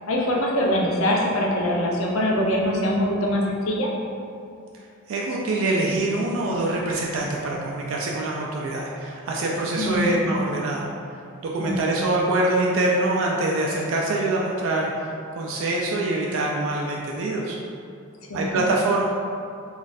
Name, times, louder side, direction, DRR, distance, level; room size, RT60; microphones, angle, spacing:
voice 1, 0.1-3.9 9.8-10.1 11.6-11.8 18.3-18.6, left 1 dB, 80° left, -3 dB, 0.6 m, -23 dB
voice 2, 5.1-10.9 11.4-17.6 18.3-19.0, right 2 dB, 75° right, -2 dB, 0.3 m, -24 dB
3.9 x 2.4 x 2.5 m, 2.4 s
head